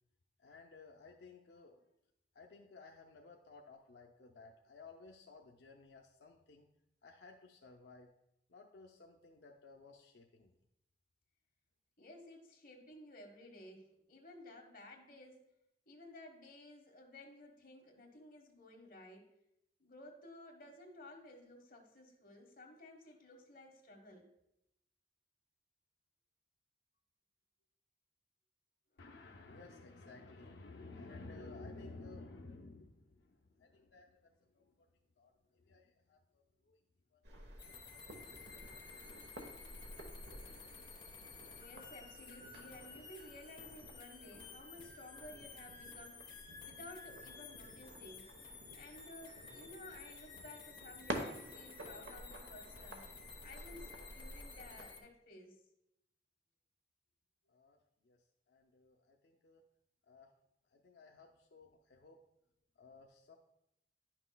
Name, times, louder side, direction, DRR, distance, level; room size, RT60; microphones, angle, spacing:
voice 1, 0.4-1.9 2.3-6.7 7.0-8.1 8.5-10.6 29.0-34.9 35.2-36.8 37.1-37.2 37.8-38.9 57.5-59.6 60.1-60.3 60.7-62.2 62.8-63.4, left 3 dB, 80° left, 1 dB, 0.5 m, -56 dB
voice 2, 12.0-15.5 15.9-19.3 19.8-24.2 28.9-29.0 41.5-46.3 46.6-48.3 48.8-53.1 53.4-55.6, left 1 dB, 50° left, 1 dB, 1.2 m, -55 dB
sound 1, 37.2-54.8, right 1 dB, 85° right, 1.1 m, -51 dB
sound 2, 37.6-55.0, left 5 dB, 25° left, 0.9 m, -54 dB
10.0 x 5.9 x 2.2 m, 0.82 s
head